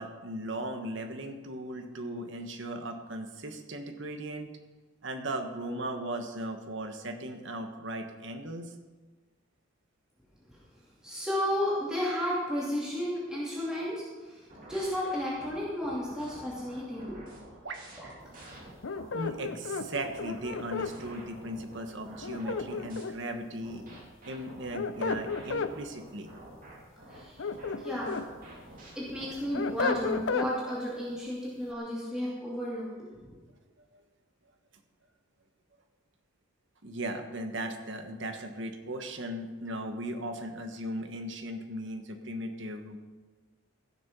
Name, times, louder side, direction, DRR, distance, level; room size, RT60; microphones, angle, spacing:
voice 1, 0.0-4.5 5.0-8.7 17.6-17.8 19.1-23.9 24.3-26.3 27.7-27.8 36.8-43.0, right 1 dB, 55° right, 5 dB, 1.3 m, -37 dB
voice 2, 11.0-17.3 18.0-18.1 22.4-22.6 27.1-27.4 27.8-28.2 28.9-32.9 33.2-33.3, equal, 5° right, -7 dB, 2.7 m, -33 dB
sound 1, 14.5-19.3 19.8-23.0 23.6-30.3, right 1 dB, 40° right, 2.9 m, -49 dB
sound 2, 18.8-20.9 22.2-23.3 24.5-25.7 27.2-28.3 28.7-30.5, left 4 dB, 65° left, 0.6 m, -33 dB
15.0 x 6.7 x 6.1 m, 1.3 s
head